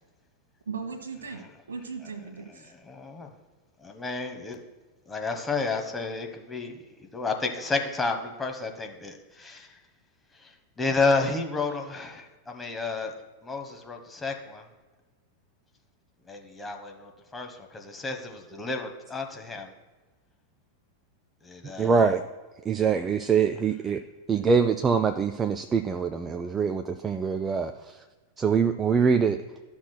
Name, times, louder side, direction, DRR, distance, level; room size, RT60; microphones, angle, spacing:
voice 1, 0.7-2.7, right 5 dB, 70° right, 4 dB, 1.2 m, -38 dB
voice 2, 2.9-3.3 3.8-4.6 5.1-9.8 10.3-13.1 13.4-14.6 16.3-19.7 21.4-22.0, left 3 dB, 15° left, 4 dB, 0.9 m, -31 dB
voice 3, 21.8-22.3 22.7-24.0 24.3-28.0 28.4-29.4, right 5 dB, 20° right, 7 dB, 0.3 m, -24 dB
12.5 x 6.0 x 2.2 m, 1.2 s
figure-of-eight pair, 90°, 0 cm